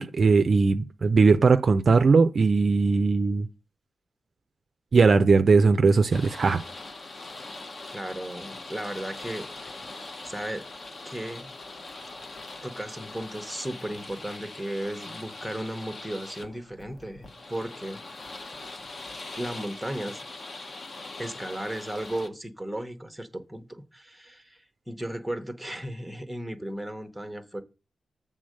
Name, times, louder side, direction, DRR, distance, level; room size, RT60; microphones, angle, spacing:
voice 1, 0.0-3.5 4.9-6.6, right 4 dB, 45° right, 0.4 m, -19 dB
sound 1, 6.1-22.3, left 2 dB, 40° left, 0.8 m, -42 dB
voice 2, 7.9-9.8 10.2-10.7 11.0-11.5 12.6-18.0 19.4-20.2 21.2-27.6, right 1 dB, ahead, 0.9 m, -35 dB
7.8 x 3.7 x 6.4 m
wide cardioid pair, 130°, 0 cm